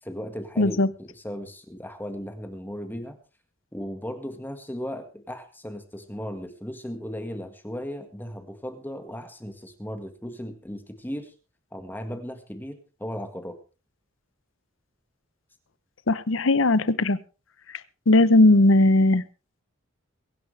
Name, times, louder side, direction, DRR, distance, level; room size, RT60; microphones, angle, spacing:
voice 1, 0.0-3.2 3.7-11.3 11.7-13.6, equal, 10° left, 7 dB, 1.8 m, -36 dB
voice 2, 0.6-0.9 16.1-17.2 18.1-19.2, left 2 dB, 75° left, 16 dB, 0.9 m, -18 dB
23.0 x 11.0 x 3.4 m, 0.32 s
head